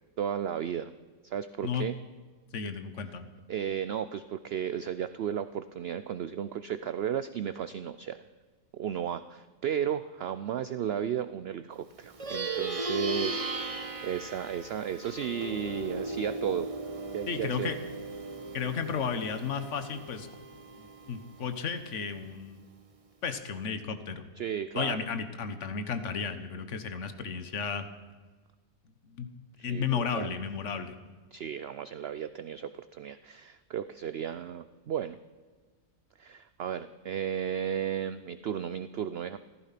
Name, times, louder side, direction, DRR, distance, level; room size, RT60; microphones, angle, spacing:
voice 1, 0.2-0.9 1.2-1.9 3.5-8.2 8.7-16.7 17.1-17.7 24.4-25.0 29.7-30.3 31.3-35.2 36.2-39.4, right 9 dB, 60° right, 12 dB, 0.7 m, -34 dB
voice 2, 2.5-3.3 17.3-17.7 18.5-20.3 20.8-22.6 23.2-24.2 24.7-27.8 29.0-29.3 29.6-31.0, left 6 dB, 60° left, 10 dB, 1.5 m, -33 dB
Plucked string instrument, 12.1-21.8, right 2 dB, 30° right, 1.0 m, -37 dB
15.0 x 14.5 x 5.9 m, 1.4 s
omnidirectional pair, 1.4 m